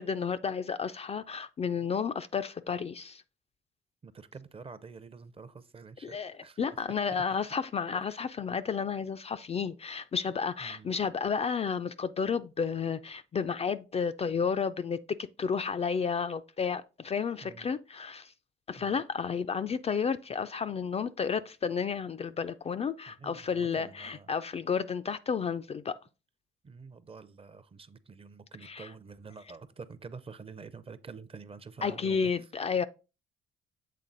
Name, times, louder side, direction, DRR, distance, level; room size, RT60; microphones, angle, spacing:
voice 1, 0.0-3.2 6.0-18.3 18.7-26.0 28.6-28.9 31.8-32.8, left 6 dB, 30° left, 0.3 m, -32 dB
voice 2, 4.0-6.6 7.1-7.2 8.0-8.2 10.6-10.9 17.4-17.7 18.8-19.0 23.1-24.3 26.6-32.3, right 5 dB, 30° right, 0.6 m, -48 dB
7.5 x 3.8 x 3.8 m
cardioid pair, 90°, 20 cm